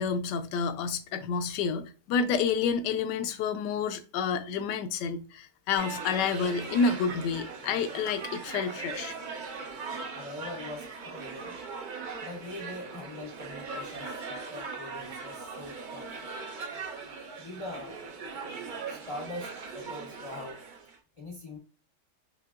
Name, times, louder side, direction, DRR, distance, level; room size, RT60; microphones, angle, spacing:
voice 1, 0.0-9.1, left 5 dB, 85° left, 1.2 m, -29 dB
sound 1, 5.8-21.0, right 4 dB, 85° right, 0.4 m, -40 dB
voice 2, 10.1-11.6 12.2-16.1 17.4-18.0 18.9-20.6 21.2-21.6, left 2 dB, 50° left, 0.4 m, -42 dB
5.6 x 2.8 x 2.4 m
omnidirectional pair, 1.8 m